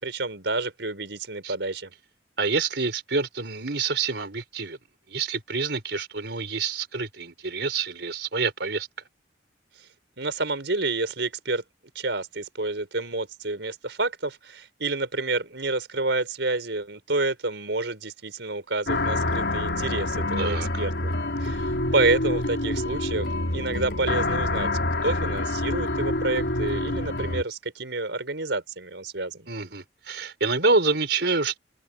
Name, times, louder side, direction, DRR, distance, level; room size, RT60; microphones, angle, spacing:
voice 1, 0.0-1.9 10.2-11.6 11.9-21.1 21.4-24.7 25.0-29.5, right 2 dB, 90° right, 4.5 m, -29 dB
voice 2, 2.4-4.8 5.1-8.9 20.4-20.7 29.5-31.6, right 4 dB, 70° right, 4.6 m, -27 dB
sound 1, 18.9-27.4, left 2 dB, 75° left, 4.2 m, -27 dB
open air
head